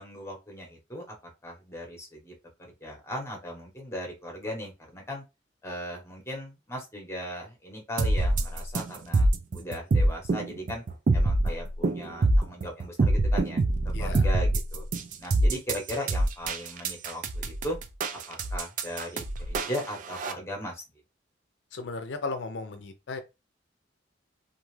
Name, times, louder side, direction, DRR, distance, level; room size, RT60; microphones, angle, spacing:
voice 1, 0.0-2.3 2.6-5.2 5.6-9.3 9.5-10.8 11.1-14.8 15.2-17.8 18.3-20.8, equal, 15° left, 0.9 m, -38 dB
sound 1, 8.0-20.3, right 2 dB, 45° right, 0.4 m, -25 dB
voice 2, 13.9-14.3 21.7-23.2, left 3 dB, 70° left, 0.5 m, -35 dB
2.5 x 2.3 x 3.1 m
head